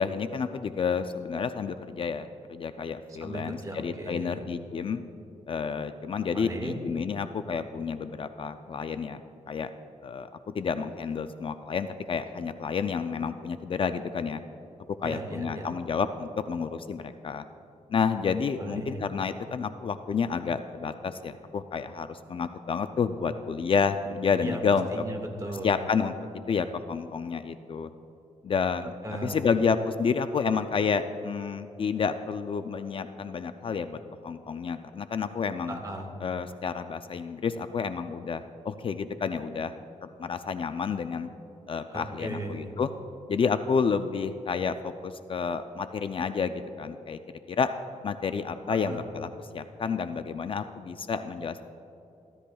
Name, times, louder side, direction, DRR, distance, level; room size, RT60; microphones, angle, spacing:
voice 1, 0.0-5.0 5.5-9.2 9.5-9.7 10.0-14.4 15.0-17.4 17.9-24.9 25.6-26.1 26.5-27.9 28.4-28.9 29.2-35.8 36.2-39.7 40.0-41.3 41.7-42.9 43.3-47.2 47.5-47.7 48.0-51.6, left 6 dB, 45° left, 10 dB, 0.4 m, -30 dB
voice 2, 3.2-4.4 6.3-6.8 15.0-15.7 18.6-19.0 24.4-24.6 24.9-25.8 29.0-29.5 35.7-36.1 41.9-42.7 48.7-49.0, right 1 dB, 30° right, 2 dB, 1.7 m, -37 dB
15.0 x 13.0 x 2.3 m, 2.9 s
wide cardioid pair, 115°, 13 cm